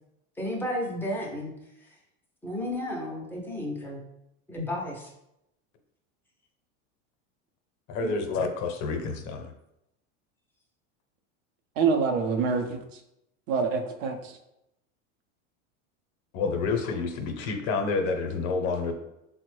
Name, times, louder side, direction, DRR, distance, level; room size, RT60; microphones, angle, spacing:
voice 1, 0.4-1.5 1.8-1.9 2.4-4.0 4.5-5.1, left 1 dB, 5° left, -2 dB, 0.4 m, -32 dB
voice 2, 7.9-9.5 16.3-18.9, left 4 dB, 60° left, 5 dB, 0.6 m, -29 dB
voice 3, 11.8-13.0 13.5-14.4, right 5 dB, 75° right, 5 dB, 0.6 m, -26 dB
3.8 x 2.1 x 3.1 m, 0.84 s
supercardioid pair, 130°, 38 cm